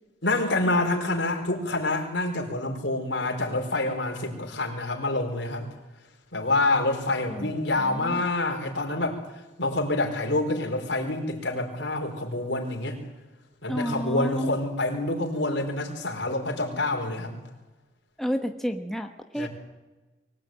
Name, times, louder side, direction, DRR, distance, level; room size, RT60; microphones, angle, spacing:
voice 1, 0.2-5.7 6.3-9.2 9.6-13.0 13.6-17.3 19.4-19.5, left 2 dB, 75° left, 2 dB, 4.8 m, -27 dB
voice 2, 7.3-8.2 13.7-14.5 18.2-19.5, equal, ahead, 4 dB, 1.1 m, -31 dB
23.5 x 17.5 x 9.2 m, 1.1 s
head